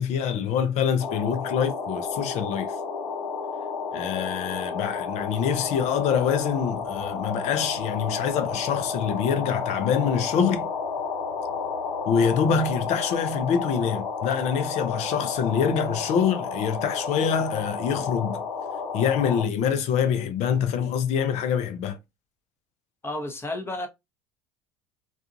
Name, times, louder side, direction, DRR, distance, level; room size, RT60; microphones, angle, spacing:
voice 1, 0.0-2.7 3.9-10.7 12.1-18.4 18.9-22.0, left 7 dB, 55° left, 0.6 m, -25 dB
sound 1, 1.0-19.4, left 5 dB, 85° left, 0.9 m, -31 dB
voice 2, 23.0-23.9, left 2 dB, 15° left, 0.8 m, -31 dB
2.4 x 2.4 x 2.7 m
hypercardioid pair, 80°, 13 cm